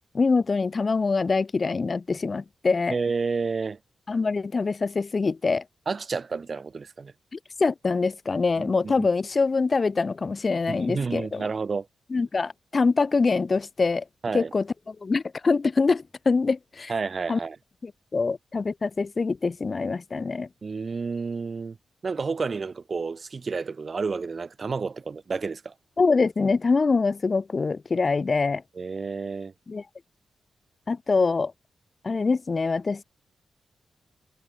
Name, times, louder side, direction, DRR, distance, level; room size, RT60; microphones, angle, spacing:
voice 1, 0.1-2.9 4.1-5.6 7.3-11.5 12.1-14.0 14.3-14.6 15.0-16.9 17.3-17.4 17.8-20.5 26.0-28.6 29.7-29.8 30.9-31.5 32.0-33.0, left 4 dB, 30° left, 0.4 m, -24 dB
voice 2, 2.9-3.8 5.9-7.1 8.6-9.1 10.7-11.9 14.2-14.5 16.9-17.6 20.6-21.8 22.0-25.7 28.7-29.5, right 4 dB, 35° right, 0.8 m, -30 dB
wide cardioid pair, 150°, 0 cm